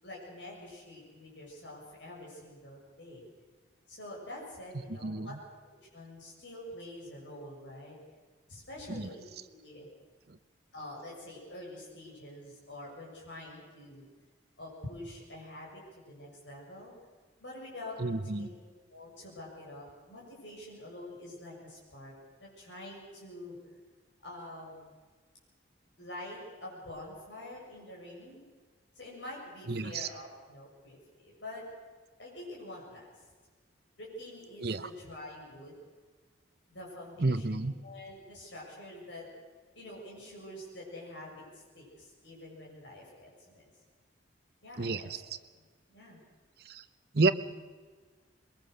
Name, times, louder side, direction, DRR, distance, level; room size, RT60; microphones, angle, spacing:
voice 1, 0.0-3.3 3.9-5.4 5.9-8.0 8.5-9.9 10.7-14.0 14.6-15.8 16.1-16.9 17.4-18.6 18.9-22.1 22.4-23.5 24.2-24.9 26.0-28.4 28.9-31.6 32.2-33.1 34.0-35.7 36.7-39.3 39.7-43.7 44.6-45.1 45.9-46.2, left 1 dB, 75° left, -3 dB, 6.8 m, -46 dB
voice 2, 4.9-5.4 8.9-9.1 10.3-10.4 18.0-18.5 29.7-30.1 34.6-34.9 37.2-37.7 44.8-45.2 46.6-46.8 47.1-47.3, right 3 dB, 55° right, 12 dB, 0.9 m, -30 dB
22.0 x 21.5 x 6.6 m, 1.4 s
head